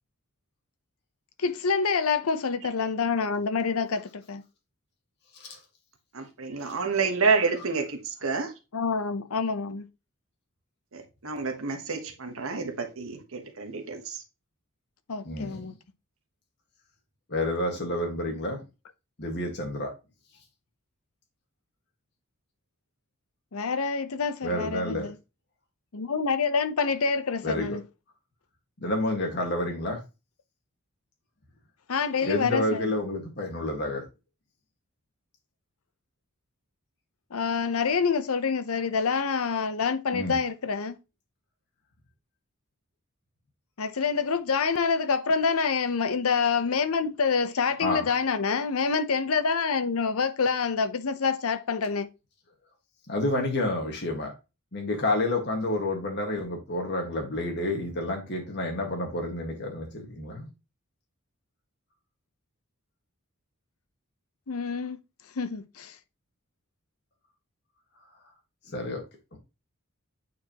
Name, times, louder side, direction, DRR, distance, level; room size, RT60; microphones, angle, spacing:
voice 1, 1.4-4.4 8.7-9.9 15.1-15.7 23.5-25.1 25.9-27.8 31.9-32.8 37.3-41.0 43.8-52.1 64.5-65.0 65.4-66.0, left 5 dB, 80° left, 0.7 m, -27 dB
voice 2, 6.1-8.5 10.9-14.2, right 4 dB, 70° right, 1.2 m, -29 dB
voice 3, 15.2-15.6 17.3-18.6 19.2-19.9 24.4-25.1 27.4-27.8 28.8-30.0 32.2-34.0 40.1-40.4 47.8-48.2 53.1-54.3 54.7-60.5 68.7-69.0 69.3-69.4, left 1 dB, 50° left, 1.7 m, -29 dB
8.4 x 4.6 x 2.9 m
head